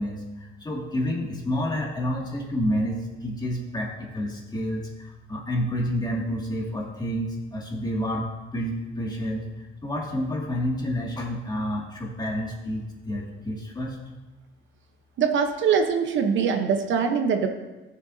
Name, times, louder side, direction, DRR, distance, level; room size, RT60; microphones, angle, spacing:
voice 1, 0.0-8.3 8.5-14.0, equal, 20° left, -1 dB, 2.1 m, -29 dB
voice 2, 15.2-17.5, right 6 dB, 70° right, 6 dB, 0.9 m, -23 dB
14.0 x 6.8 x 2.7 m, 1.1 s
cardioid pair, 90°, 20 cm